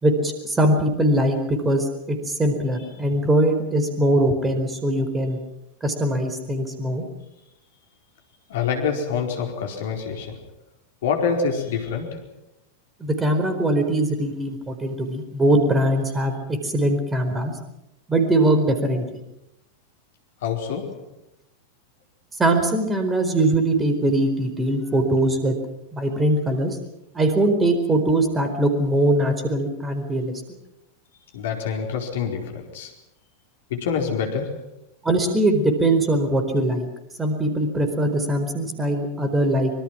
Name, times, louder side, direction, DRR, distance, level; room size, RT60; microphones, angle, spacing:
voice 1, 0.0-5.4 5.8-7.0 13.0-16.3 16.6-17.5 18.1-19.2 22.4-25.5 25.9-26.7 27.1-30.3 35.0-36.9 37.2-39.7, right 1 dB, 15° right, 7 dB, 4.4 m, -21 dB
voice 2, 8.5-10.5 11.0-12.3 20.4-21.2 31.3-32.9 33.7-34.7, left 6 dB, 55° left, 3 dB, 4.6 m, -26 dB
25.5 x 24.5 x 6.2 m, 0.87 s
figure-of-eight pair, 90°, 0 cm